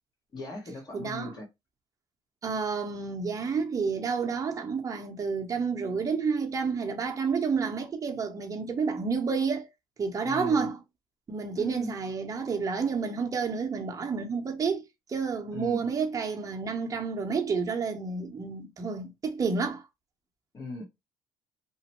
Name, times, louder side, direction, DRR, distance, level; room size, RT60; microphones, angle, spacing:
voice 1, 0.3-1.5 10.2-10.6 11.5-11.9 15.5-15.8 20.5-20.9, left 2 dB, 40° left, 1.3 m, -38 dB
voice 2, 0.9-1.3 2.4-9.7 10.0-10.8 11.3-19.8, right 5 dB, 30° right, 0.8 m, -30 dB
3.0 x 2.1 x 3.0 m
supercardioid pair, 80°, 11 cm